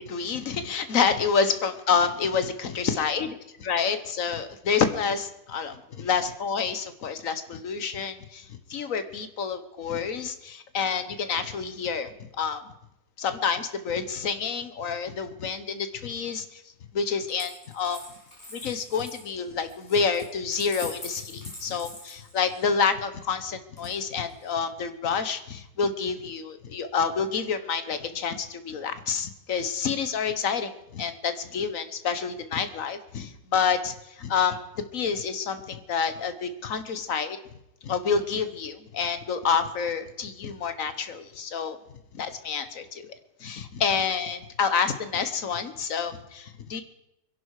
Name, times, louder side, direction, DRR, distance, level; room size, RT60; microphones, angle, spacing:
voice 1, 0.1-3.3 3.6-12.7 13.2-16.6 16.9-18.0 18.5-37.4 37.8-41.8 42.1-43.1 43.4-46.8, left 6 dB, 50° left, 10 dB, 1.2 m, -28 dB
Coin (dropping), 17.3-22.7 23.8-24.5, left 1 dB, 35° left, 6.0 m, -44 dB
23.5 x 11.5 x 4.8 m, 0.84 s
omnidirectional pair, 2.3 m